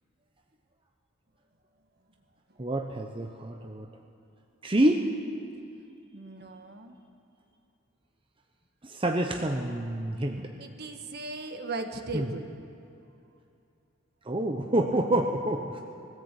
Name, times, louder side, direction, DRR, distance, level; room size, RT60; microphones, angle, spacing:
voice 1, 2.6-3.9 4.6-5.0 8.8-10.5 12.1-12.3 14.3-15.8, right 1 dB, 25° right, 3 dB, 0.9 m, -27 dB
voice 2, 6.1-6.9 10.6-12.5, right 2 dB, 50° right, 5 dB, 1.5 m, -37 dB
21.5 x 14.5 x 8.4 m, 2.7 s
head